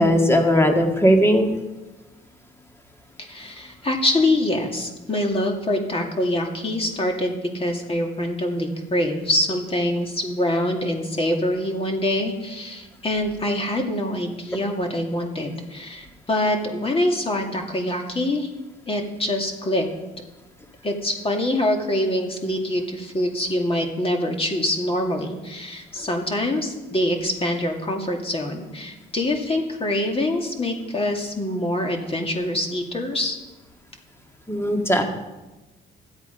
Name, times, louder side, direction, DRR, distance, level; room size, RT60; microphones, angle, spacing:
voice 1, 0.0-1.5 34.5-35.0, equal, 10° left, 3 dB, 1.9 m, -18 dB
voice 2, 3.2-18.5 18.9-19.9 20.8-33.4, left 1 dB, 30° left, 3 dB, 2.3 m, -25 dB
13.0 x 8.1 x 5.2 m, 1.1 s
cardioid pair, 90°, 20 cm